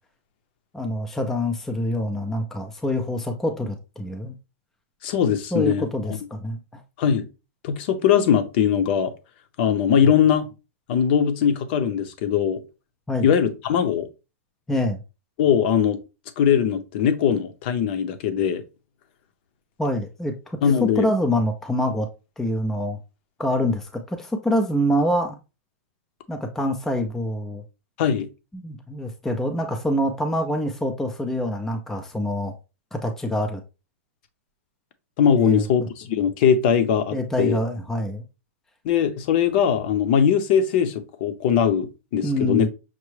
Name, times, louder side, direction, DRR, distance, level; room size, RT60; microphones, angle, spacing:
voice 1, 0.7-4.3 5.5-6.8 10.0-10.1 13.1-13.3 14.7-15.0 19.8-22.1 22.4-23.0 23.4-25.4 26.3-27.6 28.5-32.5 32.9-33.6 35.4-35.9 37.1-38.2 42.2-42.7, equal, 5° left, 0.4 m, -25 dB
voice 2, 5.0-6.2 7.0-7.3 7.6-9.1 9.6-10.5 10.9-12.6 13.2-14.1 15.4-16.0 16.4-18.6 20.6-21.1 28.0-28.3 35.2-37.6 38.8-42.7, left 8 dB, 45° left, 0.7 m, -21 dB
5.9 x 2.1 x 3.1 m
supercardioid pair, 155°, 8 cm